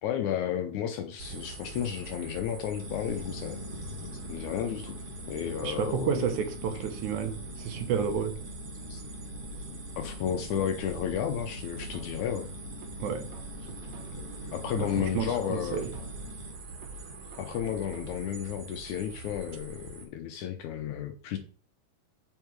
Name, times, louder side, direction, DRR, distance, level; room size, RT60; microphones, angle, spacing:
voice 1, 0.0-3.6 4.3-5.0 5.2-6.2 8.9-9.0 10.0-12.5 14.5-15.8 17.4-21.4, left 9 dB, 75° left, 1.9 m, -32 dB
sound 1, 1.2-20.1, right 3 dB, 50° right, 2.0 m, -43 dB
sound 2, 2.8-16.5, left 2 dB, 35° left, 2.0 m, -44 dB
voice 2, 5.6-8.4 13.0-13.3 14.8-15.9, right 7 dB, 70° right, 2.0 m, -31 dB
sound 3, 10.9-12.4 12.8-14.4 14.8-16.4 16.8-18.4 18.8-18.9, right 3 dB, 90° right, 3.0 m, -49 dB
7.2 x 6.4 x 4.7 m
omnidirectional pair, 4.0 m